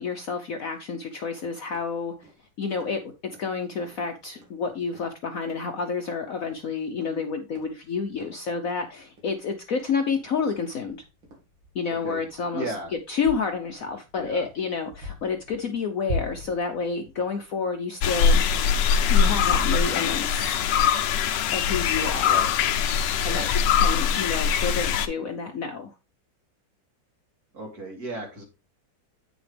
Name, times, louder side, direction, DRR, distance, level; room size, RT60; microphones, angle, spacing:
voice 1, 0.0-2.3 2.6-11.0 11.7-12.7 13.1-18.4 19.1-20.6 21.5-22.5 23.2-23.4 23.7-25.9, left 5 dB, 55° left, 1.1 m, -29 dB
sound 1, 1.7-19.9, left 1 dB, 90° right, 2.7 m, -43 dB
voice 2, 11.9-12.2 12.5-12.9 14.2-14.4 22.3-22.5 23.2-23.5 27.5-28.4, right 2 dB, 50° right, 3.1 m, -35 dB
sound 2, 18.0-25.1, left 7 dB, 75° left, 1.4 m, -22 dB
8.7 x 6.2 x 3.4 m
omnidirectional pair, 2.0 m